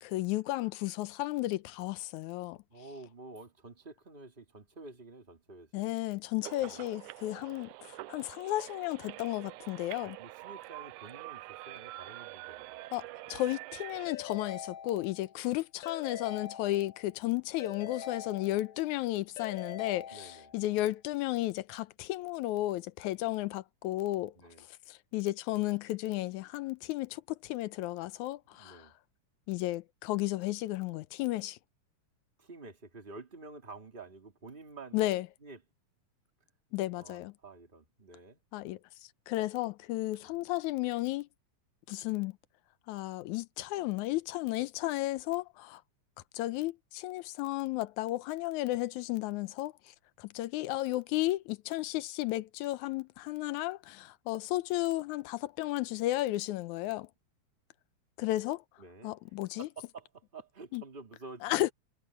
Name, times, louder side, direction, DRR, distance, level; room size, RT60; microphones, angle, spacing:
voice 1, 0.0-2.6 5.7-10.2 12.9-24.3 24.9-28.8 29.5-31.6 34.9-35.3 36.7-37.3 38.5-38.8 39.3-41.3 41.9-42.4 42.9-45.8 46.3-57.1 58.2-58.6 59.0-59.7 60.7-60.8 61.4-61.7, left 17 dB, 80° left, 2.1 m, -33 dB
voice 2, 2.7-5.9 6.6-6.8 10.0-12.8 20.1-20.5 24.3-24.6 28.5-28.9 32.4-35.0 35.4-35.6 36.9-38.4 40.2-40.3 58.8-59.2 59.6-61.6, right 3 dB, 15° right, 2.8 m, -50 dB
sound 1, 6.4-14.1, right 18 dB, 85° right, 2.0 m, -46 dB
Keyboard (musical) / Ringtone, 14.1-15.4 15.8-17.2 17.6-18.9 19.4-20.7, left 8 dB, 45° left, 1.8 m, -44 dB
omnidirectional pair, 3.5 m